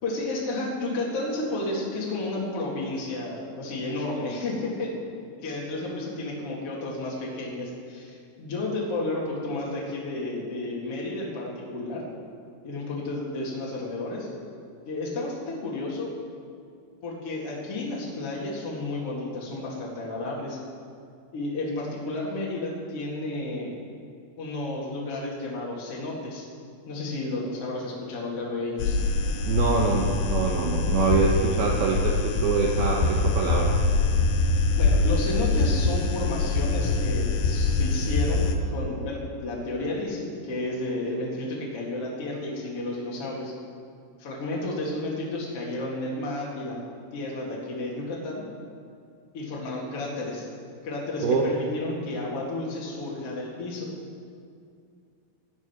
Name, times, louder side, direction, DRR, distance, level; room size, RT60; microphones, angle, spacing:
voice 1, 0.0-5.0 5.4-12.1 12.6-14.3 14.9-16.1 17.0-20.6 21.3-23.7 24.4-26.4 26.8-29.0 34.8-43.5 44.2-46.8 47.1-48.4 49.3-50.5 50.8-53.9, left 2 dB, 50° left, -5 dB, 1.9 m, -32 dB
sound 1, 28.8-38.5, left 3 dB, 70° left, 2.9 m, -24 dB
voice 2, 29.5-33.8 51.2-51.5, right 4 dB, 80° right, -1 dB, 2.1 m, -24 dB
19.0 x 9.8 x 5.9 m, 2.4 s
omnidirectional pair, 6.0 m